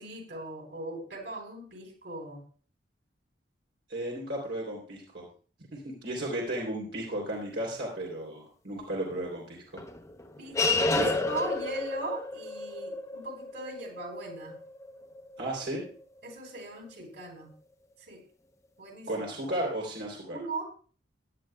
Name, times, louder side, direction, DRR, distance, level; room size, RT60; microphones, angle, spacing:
voice 1, 0.0-2.4 10.4-14.6 16.2-17.5 18.0-18.2 18.8-19.2 20.3-20.6, right 2 dB, 70° right, 2 dB, 4.1 m, -39 dB
voice 2, 3.9-5.2 5.7-9.8 11.0-11.2 15.4-15.8 19.1-20.4, right 1 dB, 85° right, -3 dB, 3.2 m, -34 dB
sound 1, 9.8-16.6, left 3 dB, 20° left, 0.8 m, -32 dB
17.0 x 10.5 x 2.3 m, 0.41 s
head